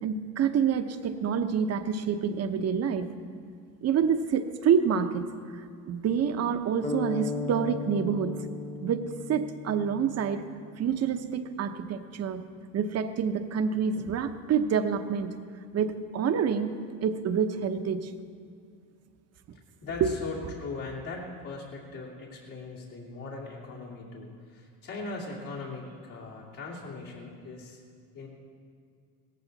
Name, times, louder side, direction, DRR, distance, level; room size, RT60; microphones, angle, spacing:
voice 1, 0.0-3.1 3.8-5.2 5.5-8.4 8.8-10.5 10.8-12.4 12.7-15.3 15.7-18.1 20.0-20.1, right 7 dB, 45° right, 9 dB, 0.9 m, -27 dB
sound 1, 6.8-10.8, left 4 dB, 20° left, 1.3 m, -36 dB
voice 2, 19.8-27.8 28.1-28.3, left 3 dB, 65° left, -5 dB, 2.8 m, -40 dB
17.0 x 14.5 x 4.1 m, 2.3 s
cardioid pair, 110°, 34 cm